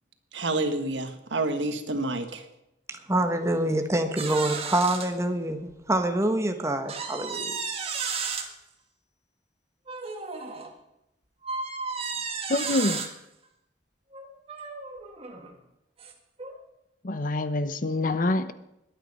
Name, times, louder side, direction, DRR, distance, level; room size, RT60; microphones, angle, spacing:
voice 1, 0.3-2.4, right 2 dB, 85° right, 8 dB, 1.6 m, -28 dB
voice 2, 2.9-5.6 5.9-7.6, right 1 dB, 15° right, 6 dB, 1.3 m, -26 dB
sound 1, 4.2-5.1 5.7-5.8 6.9-8.5 9.9-10.7 11.4-13.1 14.1-15.5 16.0-16.1 16.4-16.6, right 5 dB, 35° right, 1.7 m, -33 dB
sound 2, 7.2-8.7, left 5 dB, 15° left, 4.9 m, -52 dB
voice 3, 12.5-13.0 17.0-18.5, left 2 dB, 50° left, 13 dB, 0.8 m, -26 dB
22.0 x 9.1 x 5.5 m, 0.86 s
head